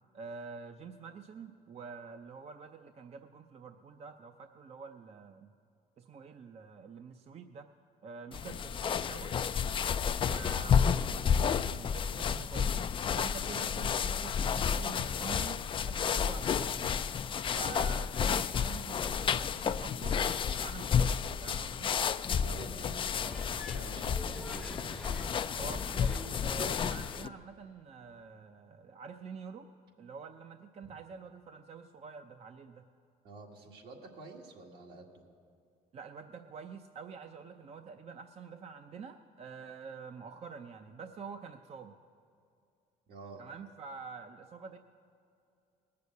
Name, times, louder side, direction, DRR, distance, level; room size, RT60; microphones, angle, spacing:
voice 1, 0.1-5.5 6.0-7.7 8.0-9.3 10.2-11.3 11.7-12.7 13.1-17.0 17.5-21.9 25.6-29.7 30.0-32.9 35.9-42.0 43.4-44.8, right 5 dB, 40° right, 7 dB, 0.6 m, -47 dB
sound 1, 8.3-27.3, left 7 dB, 30° left, 0.3 m, -31 dB
voice 2, 22.4-23.1 23.6-24.7 30.8-30.9 33.2-35.2 43.1-43.4, right 3 dB, 75° right, 0 dB, 2.1 m, -49 dB
sound 2, 23.3-27.3, left 1 dB, ahead, 0.8 m, -46 dB
19.0 x 6.8 x 8.1 m, 2.5 s
cardioid pair, 110°, 17 cm